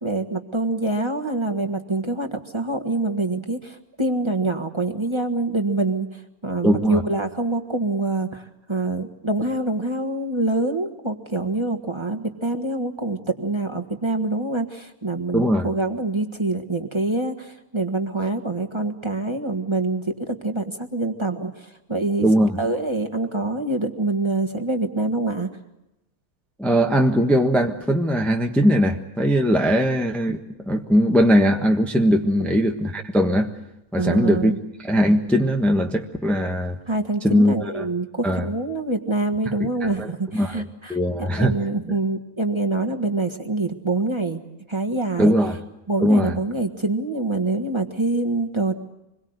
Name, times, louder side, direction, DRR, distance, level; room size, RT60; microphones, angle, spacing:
voice 1, 0.0-6.1 6.4-22.3 22.6-25.5 32.4-32.5 34.0-34.6 36.9-44.4 44.7-45.3 45.9-48.7, right 2 dB, 20° right, 5 dB, 1.5 m, -25 dB
voice 2, 6.6-7.0 15.3-15.7 22.2-22.6 26.6-30.4 30.7-33.5 33.9-34.5 34.8-36.8 37.2-37.8 38.2-38.5 39.6-40.6 40.9-41.5 45.2-45.6 46.0-46.4, equal, ahead, 2 dB, 1.2 m, -20 dB
26.0 x 22.0 x 8.0 m, 0.91 s
omnidirectional pair, 1.6 m